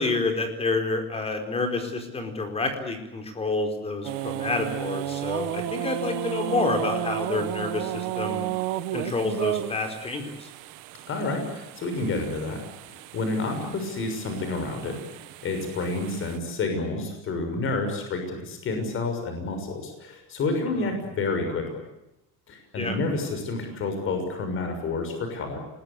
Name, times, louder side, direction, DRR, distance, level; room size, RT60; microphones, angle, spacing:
voice 1, 0.0-8.5 8.9-10.5 22.8-23.0, left 3 dB, 20° left, 6 dB, 4.5 m, -28 dB
sound 1, 4.0-16.4, right 15 dB, 80° right, 1.7 m, -33 dB
voice 2, 11.1-12.6 12.9-15.0 15.4-21.8 22.5-25.6, left 3 dB, 40° left, 5 dB, 6.4 m, -29 dB
28.0 x 21.0 x 8.4 m, 0.89 s
cardioid pair, 165°, 33 cm